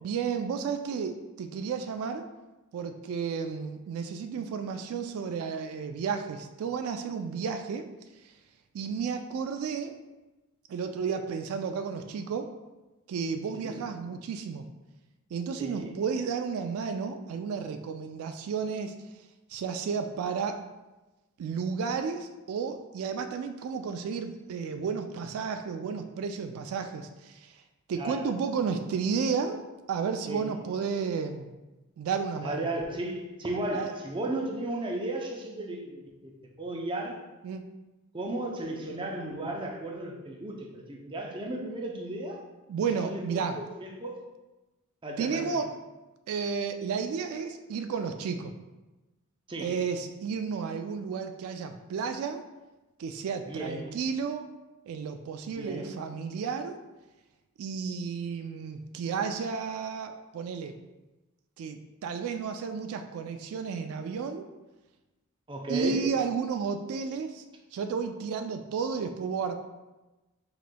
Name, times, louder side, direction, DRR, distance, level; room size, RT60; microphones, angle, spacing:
voice 1, 0.0-2.3 2.7-7.9 8.2-8.3 8.7-10.0 10.7-12.5 13.1-14.7 15.3-19.0 19.5-20.6 21.4-27.6 27.9-29.6 29.9-31.6 32.0-32.6 33.7-33.9 37.4-37.7 42.7-43.6 45.2-45.8 46.3-48.5 49.6-52.4 53.0-54.5 54.9-56.8 57.6-60.8 61.6-64.5 65.7-67.4 67.7-69.5, right 6 dB, 80° right, 7 dB, 0.3 m, -32 dB
voice 2, 15.6-16.0 28.0-28.3 30.3-30.6 32.4-36.3 36.6-37.2 38.1-42.4 43.0-43.4 43.8-44.2 45.0-45.6 49.5-49.8 53.5-53.9 55.5-55.9 65.5-66.1, right 2 dB, 25° right, 0 dB, 0.5 m, -34 dB
4.9 x 3.9 x 2.2 m, 1.1 s
head